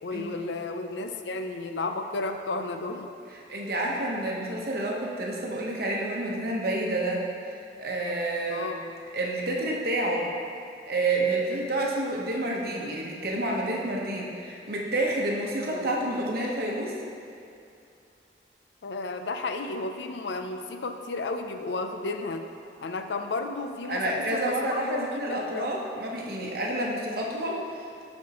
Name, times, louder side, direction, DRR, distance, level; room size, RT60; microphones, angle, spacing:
voice 1, 0.0-3.1 8.5-8.8 11.4-11.7 15.7-16.1 18.8-22.4 22.8-25.7, left 3 dB, 80° left, 6 dB, 0.5 m, -33 dB
voice 2, 3.3-8.7 9.1-10.3 10.9-16.9 23.9-28.0, right 1 dB, 55° right, -2 dB, 1.0 m, -29 dB
12.0 x 4.3 x 2.9 m, 2.5 s
head